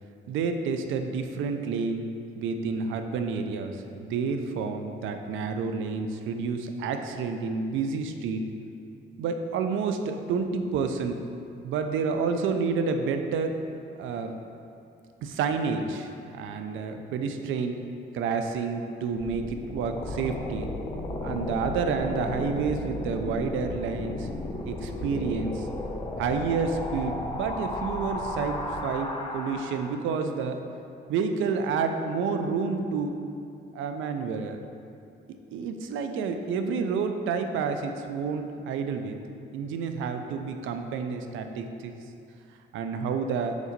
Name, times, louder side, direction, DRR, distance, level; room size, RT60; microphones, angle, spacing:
voice 1, 0.3-8.4 9.2-11.2 11.6-13.6 14.0-14.3 15.2-17.8 18.1-20.7 21.2-24.3 24.7-25.7 26.2-30.6 31.1-33.2 33.7-34.6 35.5-39.2 39.5-42.0 42.7-43.6, right 5 dB, 85° right, 6 dB, 0.5 m, -29 dB
sound 1, 19.2-30.1, left 1 dB, 25° left, 0.7 m, -34 dB
5.1 x 3.9 x 5.1 m, 2.6 s
cardioid pair, 90°, 20 cm